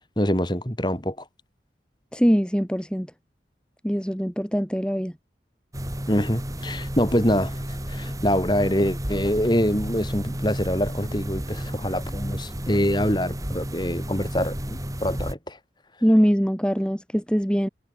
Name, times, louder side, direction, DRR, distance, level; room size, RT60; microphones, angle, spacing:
voice 1, 0.2-1.2 6.1-7.5 7.9-15.6, equal, 25° left, 7.1 m, -25 dB
voice 2, 2.1-3.1 3.8-5.1 16.0-17.7, equal, 5° left, 7.5 m, -22 dB
sound 1, 5.7-15.3, equal, 20° right, 3.9 m, -32 dB
head